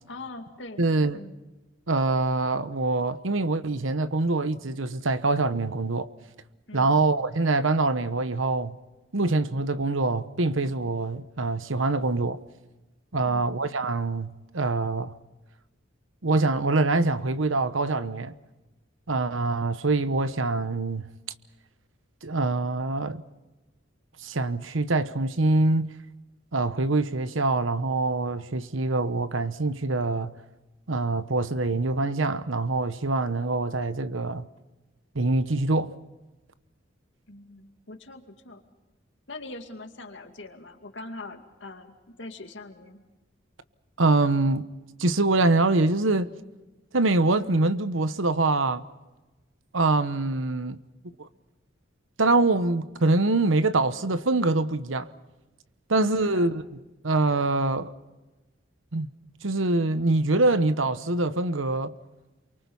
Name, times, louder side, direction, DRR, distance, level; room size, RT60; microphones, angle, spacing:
voice 1, 0.1-0.8 1.1-1.3 6.7-7.0 13.2-13.5 37.3-38.6 39.3-41.9 42.2-43.0 56.2-56.5, left 2 dB, 65° left, 2.4 m, -42 dB
voice 2, 0.8-1.2 1.9-6.1 6.7-8.7 9.1-12.4 13.1-15.1 16.2-18.3 19.1-21.1 22.2-23.2 24.2-25.9 26.5-30.3 30.9-34.5 35.1-35.9 44.0-44.7 45.0-46.3 46.9-48.8 49.7-50.8 51.2-51.3 52.2-55.1 55.9-56.6 57.0-57.9 58.9-59.1 59.4-61.9, right 2 dB, 85° right, 1.1 m, -24 dB
28.5 x 24.0 x 5.5 m
head